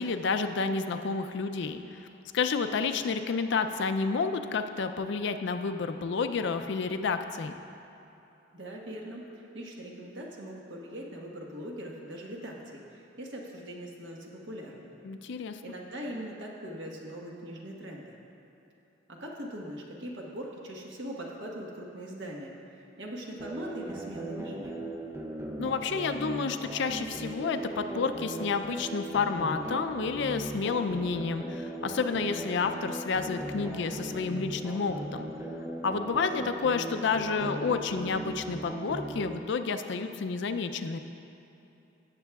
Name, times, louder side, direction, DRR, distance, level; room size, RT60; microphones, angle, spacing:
voice 1, 0.0-2.1 2.3-7.5 15.0-15.6 25.6-35.3 35.8-41.0, left 5 dB, 65° left, 8 dB, 0.4 m, -30 dB
voice 2, 8.5-15.0 15.6-18.2 19.1-24.8, equal, 65° right, -2 dB, 1.3 m, -41 dB
sound 1, 23.4-39.4, right 1 dB, 15° right, 0.5 m, -38 dB
16.5 x 7.4 x 2.4 m, 2.9 s
head